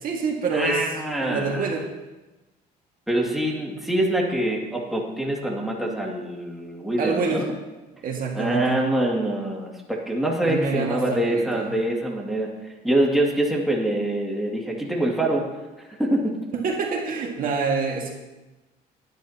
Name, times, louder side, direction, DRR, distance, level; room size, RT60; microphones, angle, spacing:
voice 1, 0.0-0.9 1.2-1.8 7.0-7.5 8.0-8.9 10.4-11.7 16.6-18.1, right 4 dB, 55° right, 0 dB, 2.1 m, -26 dB
voice 2, 0.5-1.7 3.1-7.5 8.3-15.5 16.0-16.4, right 1 dB, ahead, -3 dB, 2.5 m, -25 dB
20.0 x 10.5 x 3.0 m, 1.1 s
cardioid pair, 110°, 17 cm